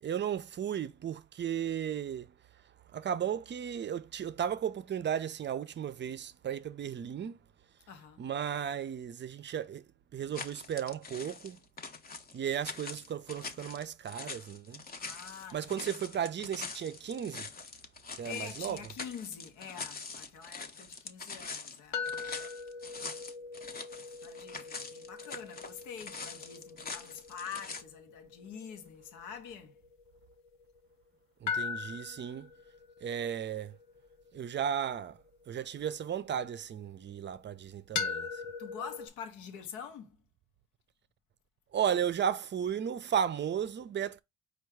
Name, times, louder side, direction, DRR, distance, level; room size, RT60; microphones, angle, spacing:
voice 1, 0.0-2.3 2.9-7.4 8.2-9.8 10.1-11.6 12.3-14.8 15.5-17.5 18.2-18.8 31.4-32.5 33.0-33.8 34.3-35.2 35.5-38.4 41.7-44.2, right 8 dB, 40° right, 0.5 m, -34 dB
voice 2, 7.9-8.2 15.0-16.0 18.2-22.1 23.9-29.8 38.6-40.2, left 7 dB, 90° left, 0.8 m, -45 dB
sound 1, 10.3-27.8, left 4 dB, 30° left, 0.6 m, -44 dB
sound 2, 21.9-30.9 31.5-36.6 38.0-39.1, left 5 dB, 65° left, 0.8 m, -41 dB
4.6 x 2.4 x 4.5 m
cardioid pair, 90°, 30 cm